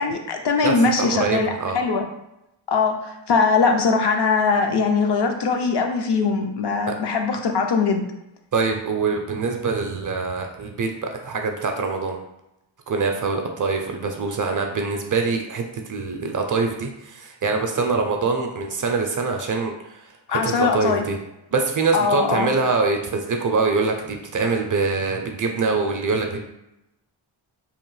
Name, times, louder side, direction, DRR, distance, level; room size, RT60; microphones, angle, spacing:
voice 1, 0.0-2.1 2.7-8.1 20.3-21.1 21.9-22.5, left 4 dB, 55° left, 4 dB, 0.5 m, -21 dB
voice 2, 0.6-1.8 8.5-12.2 12.9-21.2 21.5-26.4, right 4 dB, 45° right, 3 dB, 0.4 m, -24 dB
3.0 x 2.1 x 3.1 m, 0.88 s
cardioid pair, 75°, 48 cm